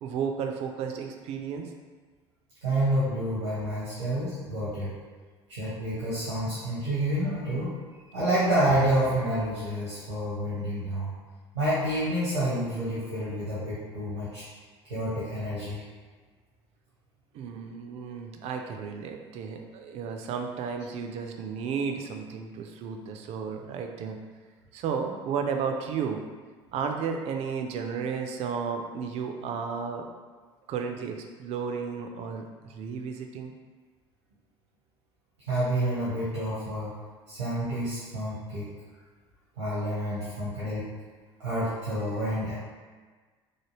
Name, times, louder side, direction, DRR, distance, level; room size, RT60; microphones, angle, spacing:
voice 1, 0.0-1.7 17.3-24.2 24.7-26.2 26.7-30.1 30.7-33.5, right 6 dB, 45° right, 4 dB, 0.4 m, -33 dB
voice 2, 2.6-4.9 5.5-7.7 8.0-11.1 11.5-14.4 14.9-15.8 35.5-36.9 37.3-38.7 39.6-40.9 41.4-42.5, right 1 dB, 90° right, -11 dB, 0.8 m, -28 dB
3.2 x 2.2 x 3.0 m, 1.4 s
figure-of-eight pair, 60°, 14 cm